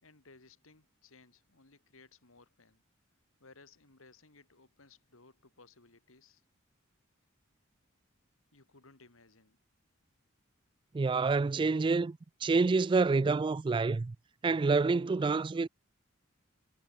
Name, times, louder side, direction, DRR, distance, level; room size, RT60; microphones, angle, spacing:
voice 1, 0.0-2.8 3.4-6.4 8.5-9.6, left 3 dB, 80° left, 2.8 m, -60 dB
voice 2, 10.9-14.2 14.4-15.7, right 4 dB, 25° right, 0.3 m, -28 dB
head